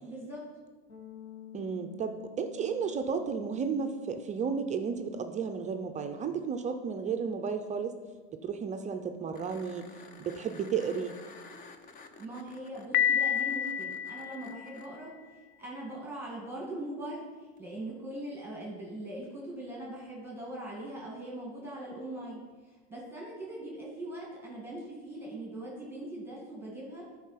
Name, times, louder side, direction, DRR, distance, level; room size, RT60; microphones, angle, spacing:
voice 1, 0.0-0.4 12.2-15.1 15.6-17.2 17.6-22.4 22.9-27.0, right 1 dB, 5° right, -4 dB, 1.9 m, -41 dB
sound 1, 0.9-10.6, left 9 dB, 60° left, 2.0 m, -53 dB
voice 2, 1.5-8.0 8.4-9.8 10.2-11.2, right 6 dB, 20° right, 6 dB, 0.5 m, -33 dB
sound 2, 9.3-14.9 17.6-17.7, left 4 dB, 25° left, 0.6 m, -52 dB
Piano, 12.9-14.9, left 9 dB, 85° left, 0.5 m, -29 dB
10.5 x 4.7 x 5.7 m, 1.4 s
supercardioid pair, 135°, 33 cm